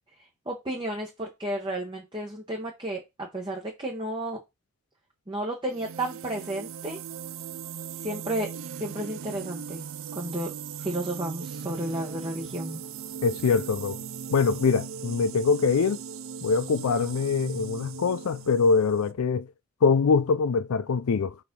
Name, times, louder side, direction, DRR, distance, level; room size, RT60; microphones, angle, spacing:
voice 1, 0.5-4.4 5.3-7.0 8.0-8.5 8.8-9.8 10.1-10.5 10.8-12.8, right 1 dB, 20° right, 1.1 m, -32 dB
sound 1, 5.7-19.1, right 7 dB, 65° right, 0.4 m, -39 dB
voice 2, 13.2-14.0 14.3-16.0 16.4-19.5 19.8-21.3, left 5 dB, 85° left, 0.5 m, -23 dB
5.1 x 4.7 x 5.2 m
head